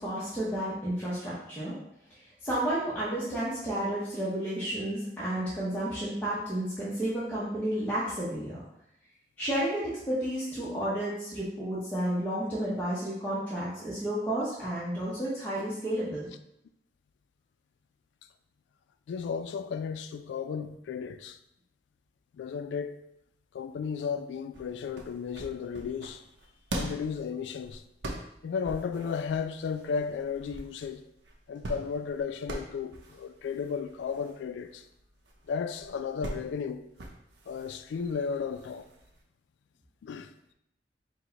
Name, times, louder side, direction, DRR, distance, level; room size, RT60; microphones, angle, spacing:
voice 1, 0.0-1.7 2.4-8.6 9.4-16.3, right 1 dB, 10° left, 0.8 m, -31 dB
voice 2, 19.1-21.4 22.3-23.0 23.5-26.2 26.7-27.8 28.4-31.0 31.5-34.8 35.5-36.8 37.5-38.8 40.0-40.3, left 6 dB, 85° left, 0.3 m, -34 dB
sound 1, 24.5-39.2, right 1 dB, 80° right, 0.6 m, -43 dB
4.6 x 2.1 x 3.9 m
head